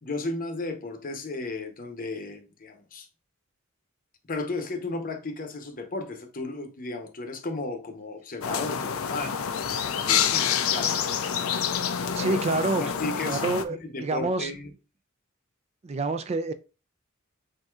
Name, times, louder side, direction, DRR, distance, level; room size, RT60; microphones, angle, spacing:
voice 1, 0.0-3.1 4.3-9.4 10.0-11.0 11.9-12.4 12.8-14.7, left 3 dB, 40° left, 0.8 m, -34 dB
sound 1, 8.4-13.6, left 8 dB, 75° left, 0.5 m, -27 dB
voice 2, 12.1-12.9 13.2-14.5 15.8-16.5, right 3 dB, 30° right, 0.3 m, -27 dB
7.5 x 2.7 x 2.4 m
head